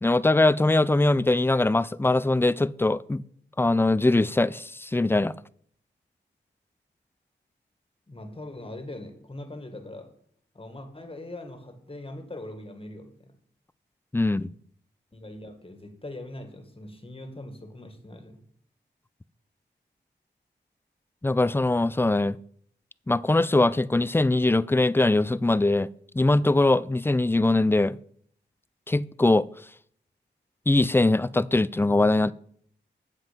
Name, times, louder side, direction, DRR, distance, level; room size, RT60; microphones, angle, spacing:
voice 1, 0.0-3.2 3.6-5.3 14.1-14.5 21.2-22.4 23.1-25.9 26.1-28.0 28.9-29.5 30.7-32.3, left 2 dB, 10° left, 0.4 m, -22 dB
voice 2, 8.1-10.1 10.5-13.3 15.1-18.4, left 1 dB, 30° left, 1.8 m, -41 dB
8.2 x 7.5 x 5.2 m
cardioid pair, 50°, 20 cm